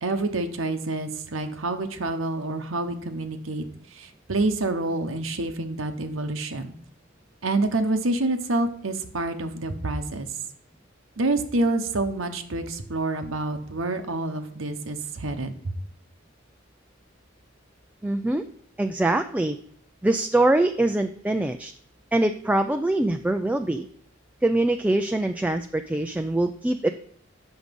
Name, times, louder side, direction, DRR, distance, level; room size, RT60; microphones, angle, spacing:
voice 1, 0.0-3.6 3.9-6.7 7.4-10.3 11.2-15.5, right 2 dB, 90° right, 6 dB, 1.0 m, -27 dB
voice 2, 18.0-18.4 18.8-19.6 20.0-21.7 22.1-23.9 24.4-26.9, right 2 dB, 5° right, 6 dB, 0.3 m, -23 dB
8.0 x 6.2 x 5.2 m, 0.63 s
head